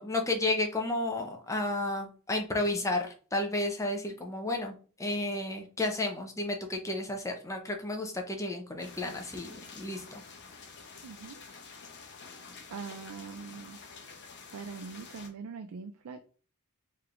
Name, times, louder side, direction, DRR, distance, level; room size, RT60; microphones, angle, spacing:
voice 1, 0.0-10.2, left 2 dB, 15° left, 3 dB, 0.7 m, -32 dB
sound 1, 8.8-15.3, left 4 dB, 50° left, 0.9 m, -49 dB
voice 2, 11.0-11.4 12.7-13.8 14.5-16.3, right 5 dB, 70° right, 7 dB, 0.4 m, -42 dB
4.8 x 3.3 x 2.5 m, 0.40 s
head